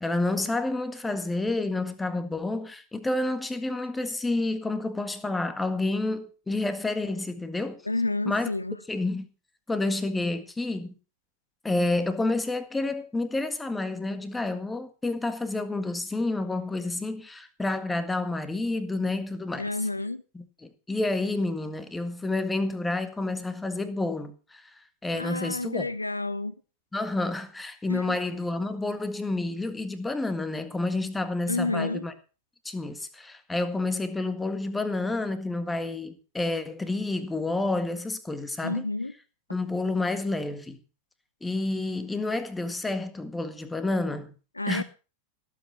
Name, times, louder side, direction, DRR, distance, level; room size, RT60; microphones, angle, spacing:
voice 1, 0.0-7.8 8.3-8.5 8.9-9.3 9.7-10.9 11.6-19.6 20.4-24.7 25.0-25.9 26.9-32.1 32.7-38.9 39.5-40.8 41.4-44.3 44.7-44.8, left 2 dB, 10° left, 1.7 m, -29 dB
voice 2, 7.8-8.8 19.6-20.2 25.1-26.5 27.9-28.2 31.5-32.0 38.6-39.1 44.6-44.8, left 2 dB, 85° left, 0.8 m, -30 dB
17.0 x 8.4 x 5.7 m
figure-of-eight pair, 90°, 0 cm